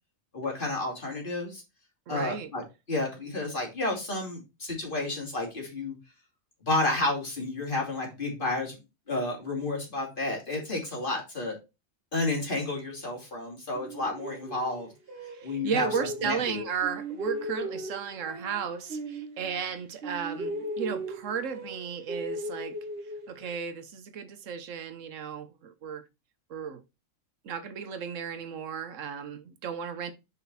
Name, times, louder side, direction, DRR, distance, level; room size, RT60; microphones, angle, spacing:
voice 1, 0.3-1.6 2.1-5.9 6.6-8.8 9.1-11.6 12.1-14.9 15.4-15.9 16.2-16.6, left 2 dB, 40° left, 2.9 m, -31 dB
voice 2, 2.1-2.5 15.3-22.8 23.0-26.0 26.5-26.8 27.4-30.1, right 7 dB, 70° right, 1.2 m, -34 dB
sound 1, 13.7-16.5 16.8-19.8 20.0-23.5, right 1 dB, 50° right, 1.3 m, -38 dB
5.9 x 5.6 x 4.1 m
omnidirectional pair, 1.4 m